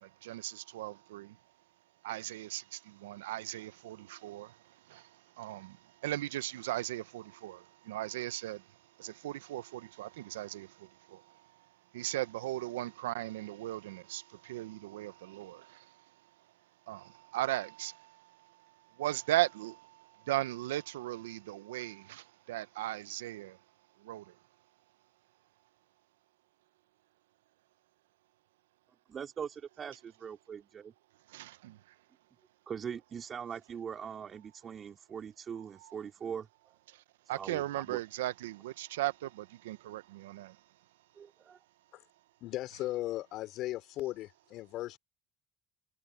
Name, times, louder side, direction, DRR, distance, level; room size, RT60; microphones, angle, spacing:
voice 1, 0.0-1.4 2.0-8.7 9.0-11.4 11.9-16.0 16.9-18.5 19.0-23.6 24.0-24.3 31.3-31.8 35.8-35.9 36.9-37.0 37.3-40.6, right 15 dB, 90° right, 0.7 m, -38 dB
voice 2, 29.1-30.9 32.7-36.5 37.3-38.0 41.2-41.3, right 7 dB, 45° right, 4.3 m, -41 dB
voice 3, 42.4-45.0, left 15 dB, 65° left, 3.7 m, -37 dB
hypercardioid pair, 70°, 0 cm